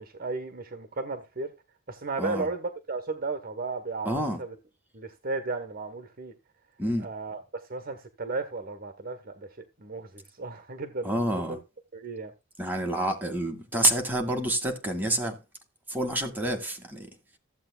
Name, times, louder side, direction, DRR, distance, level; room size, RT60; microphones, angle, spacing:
voice 1, 0.0-1.5 1.9-4.5 4.9-6.3 7.0-7.4 7.7-9.5 9.8-11.6 11.9-12.3, right 3 dB, 45° right, 1.2 m, -34 dB
voice 2, 4.1-4.4 6.8-7.1 11.0-11.6 12.6-15.4 15.9-17.1, right 1 dB, 10° right, 2.1 m, -28 dB
15.0 x 7.9 x 2.3 m
head